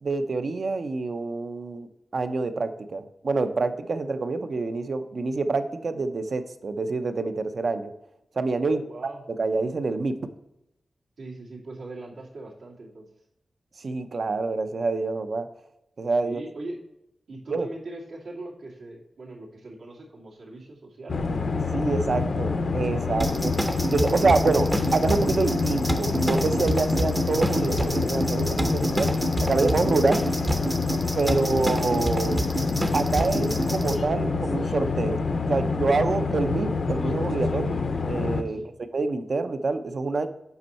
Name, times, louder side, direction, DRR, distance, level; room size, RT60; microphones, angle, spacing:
voice 1, 0.0-7.9 8.4-8.8 9.3-10.1 13.8-15.5 16.0-16.4 17.5-17.7 21.7-23.5 23.9-29.1 29.4-30.3 31.2-32.4 32.9-38.6 38.9-40.3, right 3 dB, 50° right, 9 dB, 0.7 m, -26 dB
voice 2, 8.7-9.2 11.2-13.1 16.2-16.8 17.3-21.6 31.2-31.8 38.5-38.7, right 2 dB, 80° right, -4 dB, 2.5 m, -41 dB
sound 1, 21.1-38.4, left 4 dB, 50° left, 0.6 m, -27 dB
sound 2, 23.2-34.0, right 1 dB, 15° right, 0.7 m, -29 dB
8.1 x 5.4 x 4.3 m, 0.85 s
wide cardioid pair, 170°, 0 cm